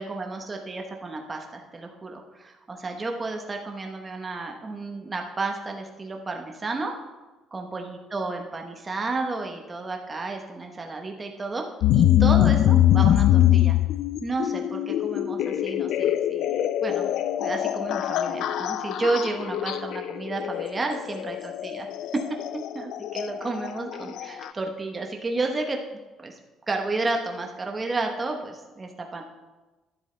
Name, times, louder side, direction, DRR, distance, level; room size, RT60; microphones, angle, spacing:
voice 1, 0.0-6.9 7.5-11.6 11.9-13.8 14.2-17.1 17.4-22.2 22.5-25.8 26.2-26.3 26.7-29.2, right 3 dB, 20° right, 2 dB, 1.0 m, -32 dB
sound 1, 11.8-24.5, left 12 dB, 65° left, 0.4 m, -23 dB
11.5 x 11.0 x 3.3 m, 1.2 s
cardioid pair, 160°, 0 cm